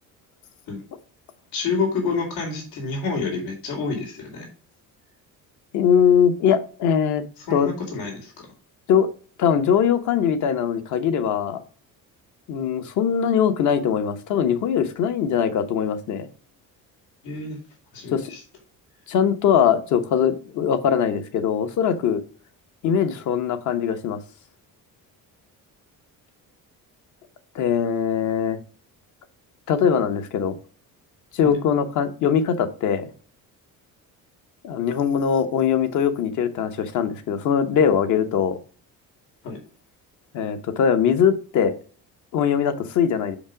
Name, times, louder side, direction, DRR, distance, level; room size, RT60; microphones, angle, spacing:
voice 1, 1.5-4.5 7.5-8.3 17.2-17.6 17.9-18.4 31.4-31.6 39.4-39.6, left 4 dB, 85° left, 2 dB, 2.8 m, -28 dB
voice 2, 5.7-7.2 7.5-7.7 8.9-9.1 9.4-11.6 12.5-16.3 18.1-18.3 19.1-22.2 22.8-24.2 27.5-28.6 29.7-30.5 31.3-33.1 34.6-38.6 40.3-41.7 42.3-43.4, left 8 dB, 60° left, 10 dB, 1.0 m, -21 dB
6.0 x 5.2 x 4.9 m, 0.41 s
cardioid pair, 175°, 34 cm